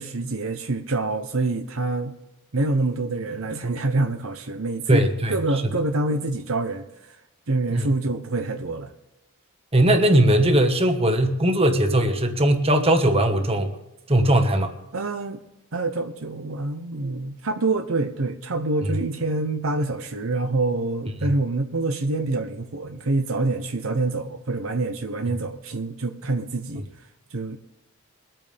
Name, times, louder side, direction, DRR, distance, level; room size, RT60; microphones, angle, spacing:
voice 1, 0.0-2.1 2.5-5.0 5.3-6.8 7.5-8.9 14.9-15.4 15.7-26.8 27.3-27.6, right 2 dB, 65° right, 7 dB, 0.9 m, -26 dB
voice 2, 4.9-5.4 7.7-7.9 9.7-13.7 14.1-14.7 18.8-18.9, right 1 dB, 25° right, 5 dB, 1.4 m, -19 dB
23.0 x 8.9 x 3.5 m, 0.94 s
head